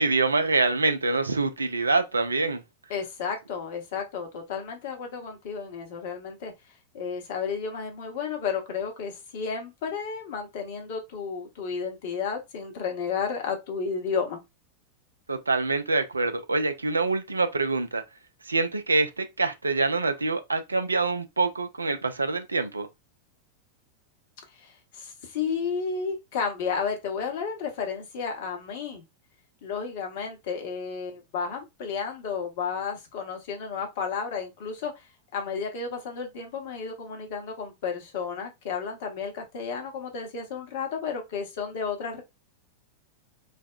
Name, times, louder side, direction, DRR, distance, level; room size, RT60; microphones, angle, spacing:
voice 1, 0.0-2.6 15.3-18.0 18.5-22.9, right 3 dB, 80° right, 0.4 m, -25 dB
voice 2, 2.9-6.5 6.9-14.4 24.6-29.0 29.6-42.2, left 6 dB, 50° left, 1.0 m, -32 dB
3.3 x 2.1 x 2.4 m
figure-of-eight pair, 90°, 0 cm